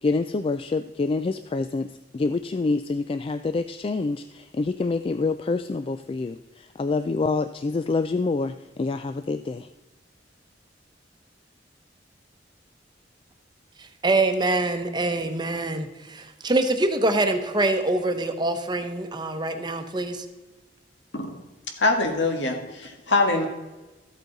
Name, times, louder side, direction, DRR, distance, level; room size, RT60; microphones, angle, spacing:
voice 1, 0.0-9.7, left 3 dB, 30° left, 10 dB, 0.3 m, -27 dB
voice 2, 14.0-20.2, right 2 dB, 25° right, 7 dB, 0.9 m, -24 dB
voice 3, 21.8-23.5, left 2 dB, 80° left, 4 dB, 1.7 m, -23 dB
13.5 x 8.3 x 4.0 m, 1.1 s
head